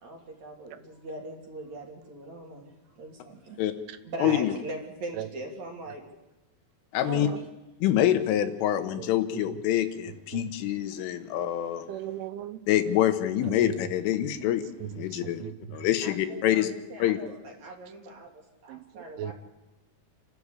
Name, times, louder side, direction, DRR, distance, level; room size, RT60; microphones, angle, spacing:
voice 1, 0.0-3.6 4.0-6.0 7.0-7.5 16.0-19.3, right 2 dB, 40° right, 1 dB, 3.6 m, -41 dB
voice 2, 4.2-4.5 6.9-7.3 7.8-11.9 12.7-14.6 14.9-15.4 15.7-16.7 17.0-17.2, left 12 dB, 85° left, 9 dB, 3.7 m, -26 dB
voice 3, 9.0-9.6 10.3-10.5 11.9-12.6 13.4-13.7 14.2-14.3 14.8-15.5 18.7-19.3, right 12 dB, 80° right, 12 dB, 3.3 m, -38 dB
29.0 x 12.0 x 8.3 m, 1.0 s
omnidirectional pair, 5.6 m